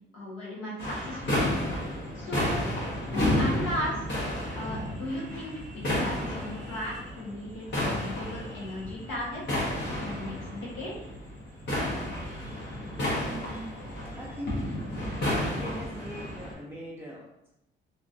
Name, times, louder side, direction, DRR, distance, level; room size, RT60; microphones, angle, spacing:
voice 1, 0.1-1.4 2.1-2.6 3.1-4.3 4.5-9.6 10.0-10.9, left 1 dB, 85° left, -4 dB, 1.1 m, -36 dB
sound 1, 0.8-16.5, left 1 dB, 60° left, 1.2 m, -31 dB
voice 2, 12.9-13.7 14.1-15.0 15.4-17.5, right 1 dB, 10° right, -6 dB, 0.6 m, -41 dB
2.9 x 2.4 x 2.6 m, 0.87 s
cardioid pair, 90°, 20 cm